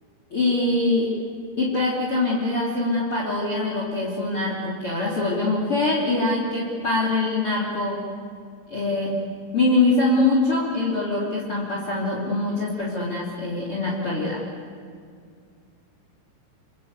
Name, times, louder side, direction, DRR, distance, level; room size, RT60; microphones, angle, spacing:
voice 1, 0.3-1.1 1.6-8.0 8.7-9.2 9.5-14.4, left 2 dB, 35° left, -3 dB, 3.4 m, -23 dB
29.0 x 22.5 x 8.2 m, 2.2 s
omnidirectional pair, 5.3 m